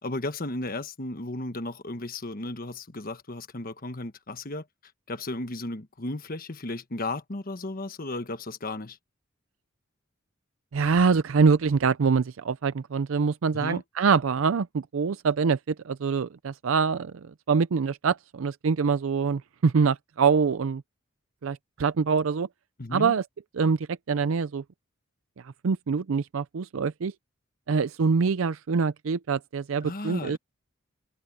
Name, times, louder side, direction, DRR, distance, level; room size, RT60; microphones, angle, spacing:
voice 1, 0.0-4.6 5.1-9.0 13.5-13.8 22.8-23.1 29.8-30.4, left 2 dB, 45° left, 1.3 m, -34 dB
voice 2, 10.7-20.8 21.4-22.5 22.9-23.2 23.6-24.6 25.4-27.1 27.7-30.4, right 5 dB, 85° right, 0.5 m, -25 dB
head